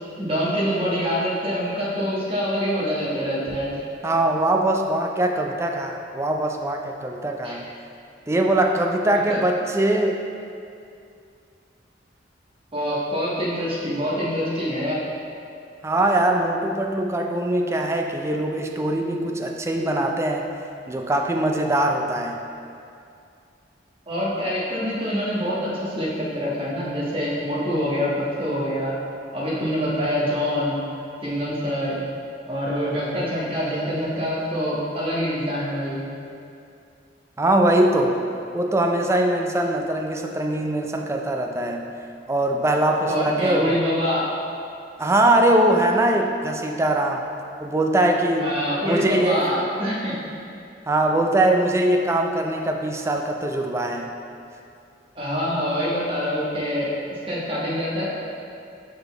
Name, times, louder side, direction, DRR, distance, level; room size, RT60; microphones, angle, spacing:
voice 1, 0.2-3.8 7.4-7.6 9.3-9.4 12.7-15.0 24.1-28.1 28.4-28.9 29.3-30.8 31.2-32.0 32.5-36.0 43.1-44.3 48.4-50.1 55.1-58.1, equal, 30° right, -7 dB, 1.3 m, -25 dB
voice 2, 4.0-7.6 8.3-10.2 15.8-20.5 20.9-22.4 37.4-38.2 38.5-41.9 42.3-43.8 45.0-47.3 47.6-48.5 48.8-49.5 50.9-54.1, right 1 dB, 15° right, 2 dB, 0.4 m, -22 dB
5.3 x 4.0 x 4.4 m, 2.5 s
head